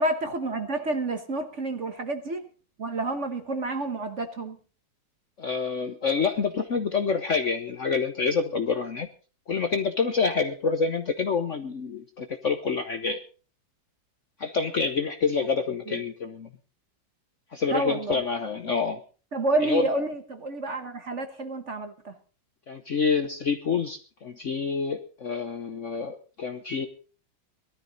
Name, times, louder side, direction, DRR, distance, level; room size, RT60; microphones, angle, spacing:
voice 1, 0.0-2.5 2.8-4.6 17.7-18.2 19.3-22.1, right 2 dB, 40° right, 8 dB, 1.3 m, -29 dB
voice 2, 5.4-9.1 9.5-13.2 14.4-16.5 17.5-19.0 19.6-19.9 22.7-26.9, left 5 dB, 50° left, 7 dB, 1.0 m, -27 dB
19.0 x 13.0 x 4.0 m, 0.38 s
omnidirectional pair, 2.2 m